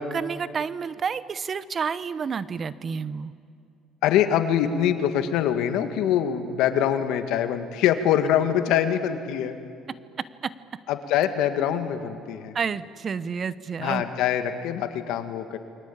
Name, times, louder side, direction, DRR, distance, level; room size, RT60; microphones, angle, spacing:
voice 1, 0.1-3.3 9.9-10.0 10.4-10.5 12.5-14.0, right 6 dB, 40° right, 16 dB, 0.9 m, -30 dB
voice 2, 4.0-9.6 10.9-12.6 13.8-15.6, left 10 dB, 80° left, 8 dB, 2.0 m, -24 dB
28.5 x 23.0 x 8.7 m, 2.4 s
cardioid pair, 105°, 0 cm